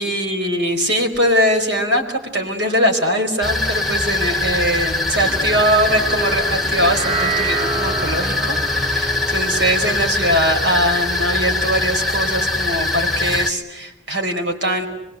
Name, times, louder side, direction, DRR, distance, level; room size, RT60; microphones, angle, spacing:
voice 1, 0.0-14.9, equal, 80° right, 3 dB, 4.8 m, -21 dB
sound 1, 3.4-13.5, left 2 dB, ahead, 1.1 m, -22 dB
sound 2, 5.2-11.6, right 2 dB, 20° right, 2.1 m, -28 dB
25.5 x 22.0 x 8.1 m, 1.0 s
head